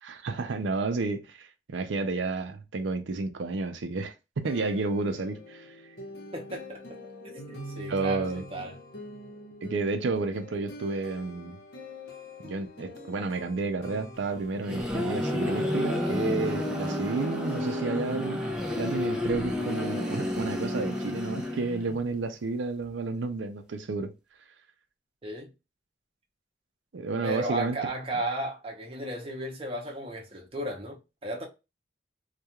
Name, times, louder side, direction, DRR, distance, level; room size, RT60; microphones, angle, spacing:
voice 1, 0.0-5.7 7.9-8.4 9.6-11.6 12.4-18.5 18.8-24.1 26.9-27.8, right 3 dB, 85° right, 0.5 m, -31 dB
sound 1, 4.4-18.6, left 1 dB, 60° left, 0.9 m, -45 dB
voice 2, 6.3-6.8 7.2-8.8 25.2-25.5 27.2-31.4, right 1 dB, 30° right, 0.7 m, -34 dB
sound 2, 14.3-22.0, left 1 dB, 5° right, 0.4 m, -30 dB
2.3 x 2.3 x 2.8 m
head